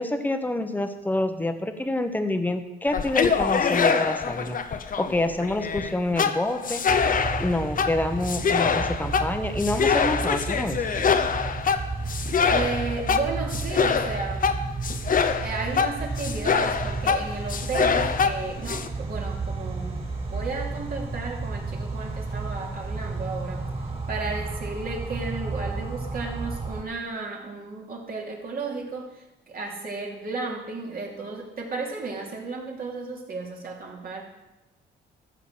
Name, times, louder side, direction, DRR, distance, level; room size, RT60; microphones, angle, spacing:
voice 1, 0.0-4.6 5.0-6.8 7.4-10.9, left 1 dB, 10° left, 7 dB, 1.2 m, -27 dB
sound 1, 2.9-18.9, left 6 dB, 45° left, 0.9 m, -25 dB
sound 2, 6.9-26.8, right 3 dB, 30° right, 3.1 m, -32 dB
voice 2, 12.5-14.5 15.4-23.7 24.1-34.2, right 3 dB, 50° right, -1 dB, 3.1 m, -33 dB
14.5 x 5.8 x 6.5 m, 0.99 s
cardioid pair, 90°, 20 cm